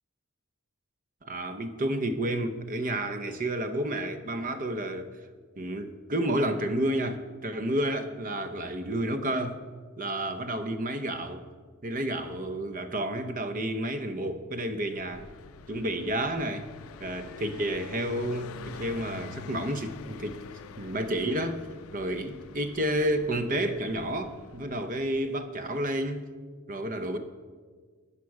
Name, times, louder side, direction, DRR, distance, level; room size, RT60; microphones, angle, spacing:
voice 1, 1.2-5.1 5.6-9.6 10.0-11.4 11.8-15.3 15.7-16.7 17.0-20.4 20.8-21.6 21.9-26.3 26.7-27.2, right 1 dB, 40° right, 9 dB, 0.7 m, -30 dB
Car passing by, 14.9-25.5, left 5 dB, 75° left, 0.4 m, -46 dB
12.5 x 7.4 x 4.8 m, 1.5 s
head